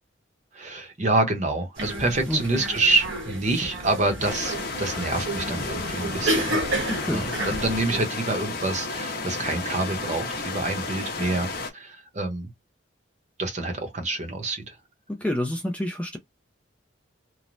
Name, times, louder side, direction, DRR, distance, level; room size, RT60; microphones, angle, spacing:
voice 1, 0.5-6.6 7.1-12.5 13.4-14.7, right 2 dB, 35° right, 0.7 m, -27 dB
sound 1, 1.8-8.0, right 1 dB, 75° right, 1.1 m, -31 dB
voice 2, 2.3-2.6 6.9-7.3 15.1-16.2, left 1 dB, 5° left, 0.3 m, -28 dB
sound 2, 4.2-11.7, left 3 dB, 50° left, 0.7 m, -32 dB
3.1 x 2.0 x 2.5 m
head